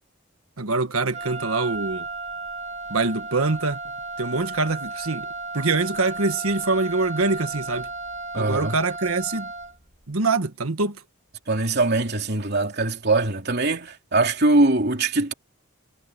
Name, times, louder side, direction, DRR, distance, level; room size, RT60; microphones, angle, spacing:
voice 1, 0.6-2.1 2.9-3.8 4.2-5.3 5.5-7.9 8.3-9.5 10.1-11.0, right 3 dB, 85° right, 1.5 m, -24 dB
Wind instrument woodwind instrument, 1.1-9.8, right 3 dB, 30° right, 1.9 m, -34 dB
voice 2, 8.3-8.7 11.5-15.3, right 2 dB, 50° right, 3.1 m, -22 dB
head